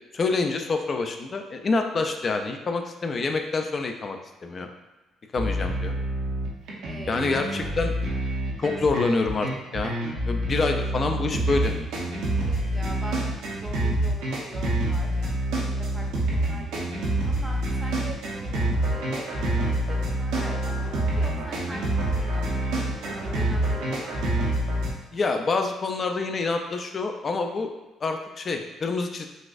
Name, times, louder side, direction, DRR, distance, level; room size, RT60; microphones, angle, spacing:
voice 1, 0.1-4.2 4.4-4.7 5.3-5.9 7.1-7.9 8.6-10.0 10.3-11.7 25.1-27.7 28.0-29.3, left 3 dB, 40° left, 5 dB, 0.4 m, -27 dB
sound 1, 5.3-24.9, right 1 dB, 85° right, 0.7 m, -27 dB
voice 2, 5.4-5.8 6.8-7.7 12.3-22.6 22.9-24.2, right 1 dB, 10° right, 0 dB, 0.7 m, -43 dB
4.0 x 2.5 x 2.4 m, 1.1 s
supercardioid pair, 75°, 0 cm